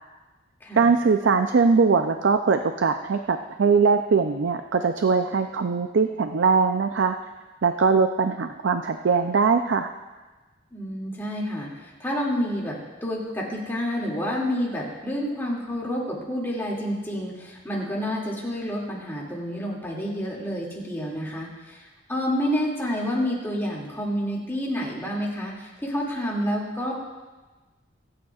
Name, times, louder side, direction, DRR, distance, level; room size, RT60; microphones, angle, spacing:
voice 1, 0.8-7.2 7.6-9.9, right 5 dB, 70° right, 7 dB, 0.5 m, -21 dB
voice 2, 10.7-27.0, equal, 10° left, -4 dB, 2.4 m, -29 dB
25.0 x 8.8 x 2.4 m, 1.2 s
head